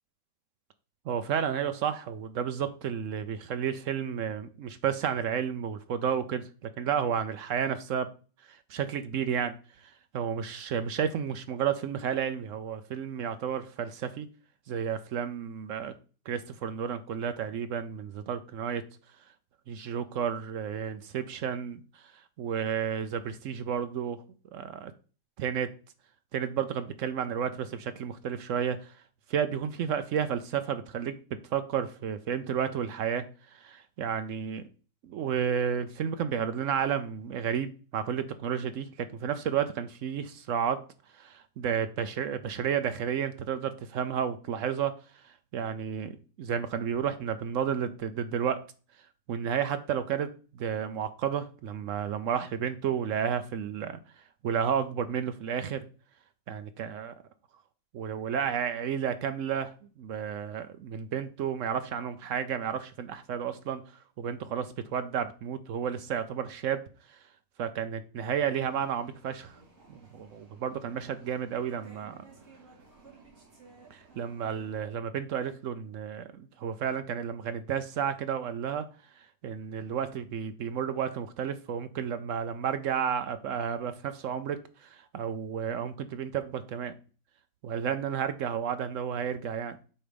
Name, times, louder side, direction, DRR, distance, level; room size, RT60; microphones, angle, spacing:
voice 1, 1.1-8.1 8.5-9.6 10.1-14.3 14.7-15.9 16.3-18.8 19.7-22.0 22.4-24.2 24.5-24.9 25.4-25.7 26.3-29.0 29.3-31.2 31.5-33.2 33.5-34.6 35.0-40.8 41.1-44.9 45.2-48.6 49.3-54.0 54.4-55.8 56.5-57.1 57.9-63.8 64.2-66.8 67.1-67.2 67.6-69.6 69.9-72.2 73.9-78.9 79.4-86.9 87.6-89.8, right 8 dB, 70° right, 10 dB, 0.7 m, -32 dB
sound 1, 68.4-74.8, right 4 dB, 45° right, 2.7 m, -56 dB
8.6 x 3.4 x 5.1 m, 0.38 s
omnidirectional pair, 1.9 m